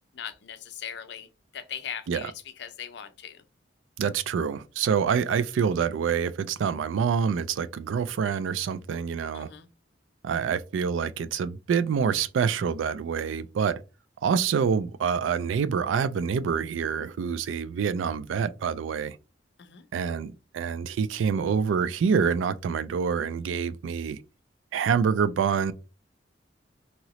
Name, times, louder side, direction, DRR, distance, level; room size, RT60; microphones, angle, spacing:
voice 1, 0.1-1.3 1.5-3.4 9.3-9.7 19.6-19.8, left 8 dB, 65° left, 0.5 m, -39 dB
voice 2, 4.0-9.5 10.2-13.8 14.2-19.2 19.9-24.2 24.7-25.7, right 6 dB, 85° right, 0.3 m, -26 dB
2.9 x 2.8 x 2.9 m
head